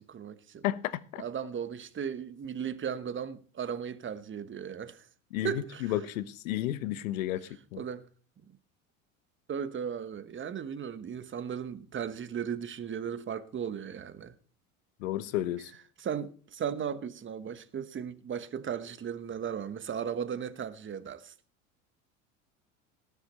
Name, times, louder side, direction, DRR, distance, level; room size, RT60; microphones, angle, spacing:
voice 1, 0.0-0.6 1.2-5.1 5.4-5.9 7.8-8.1 9.5-14.3 16.0-21.3, right 8 dB, 30° right, 1.2 m, -36 dB
voice 2, 0.6-1.2 5.3-7.8 15.0-15.7, left 13 dB, 75° left, 1.0 m, -32 dB
19.0 x 7.3 x 4.3 m
hypercardioid pair, 80°, 42 cm